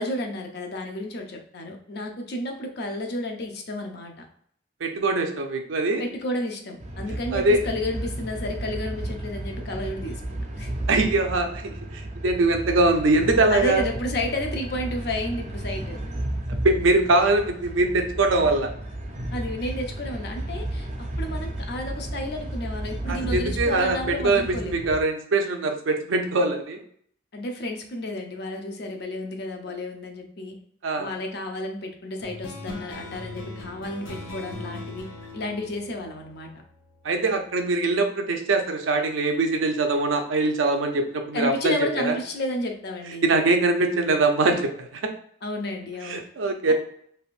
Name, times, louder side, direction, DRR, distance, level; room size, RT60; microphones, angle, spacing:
voice 1, 0.0-4.3 6.0-10.7 13.5-16.0 19.3-20.9 21.2-24.9 27.3-30.6 31.0-35.1 35.3-36.5 41.3-43.3 45.4-46.2 46.7-46.8, left 1 dB, 55° left, 3 dB, 0.5 m, -32 dB
voice 2, 4.8-6.1 7.3-7.6 10.9-11.8 12.2-13.8 16.6-18.7 23.1-26.8 30.8-31.1 37.0-41.8 42.0-42.1 43.2-45.0 46.0-46.7, right 2 dB, 85° right, 5 dB, 0.5 m, -22 dB
sound 1, 6.8-25.0, right 1 dB, 35° right, 0.5 m, -33 dB
sound 2, 32.2-37.1, left 2 dB, 90° left, 0.8 m, -39 dB
3.4 x 2.5 x 2.4 m, 0.64 s
head